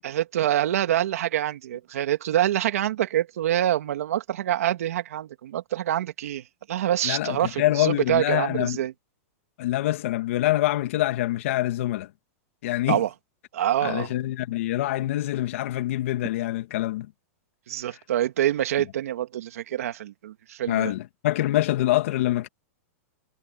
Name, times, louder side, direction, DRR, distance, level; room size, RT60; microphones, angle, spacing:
voice 1, 0.0-8.9 12.9-13.1 13.5-14.1 17.7-20.9, right 12 dB, 80° right, 2.3 m, -26 dB
voice 2, 7.0-8.8 9.6-12.1 12.6-13.0 13.8-17.1 17.9-18.0 20.7-22.5, left 15 dB, 60° left, 2.3 m, -25 dB
supercardioid pair, 160°, 8 cm